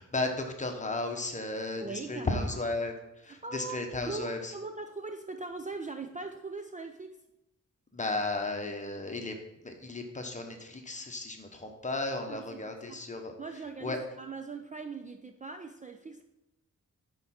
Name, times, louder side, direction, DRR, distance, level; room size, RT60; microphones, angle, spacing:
voice 1, 0.0-4.5 7.9-9.3 9.6-13.3 13.8-14.0, left 2 dB, 25° left, 4 dB, 0.9 m, -34 dB
voice 2, 1.8-2.5 3.3-3.8 4.1-7.2 12.3-12.6 12.9-13.0 13.4-16.2, right 3 dB, 25° right, 5 dB, 0.4 m, -40 dB
10.5 x 4.7 x 4.2 m, 0.91 s
wide cardioid pair, 155°, 31 cm